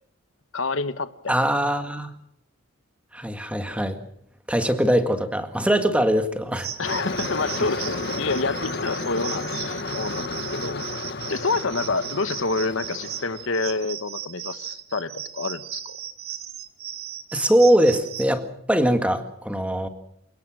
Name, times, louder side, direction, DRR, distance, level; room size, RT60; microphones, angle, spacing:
voice 1, 0.5-1.4 6.8-10.8 11.3-16.0, left 3 dB, 65° left, 13 dB, 1.2 m, -28 dB
voice 2, 1.3-2.1 3.1-4.0 4.5-6.7 17.3-19.9, right 1 dB, 5° right, 7 dB, 1.8 m, -22 dB
sound 1, 6.6-18.3, right 10 dB, 85° right, 1.8 m, -36 dB
sound 2, 6.8-13.9, left 3 dB, 50° left, 1.4 m, -32 dB
28.5 x 18.0 x 6.3 m, 0.75 s
head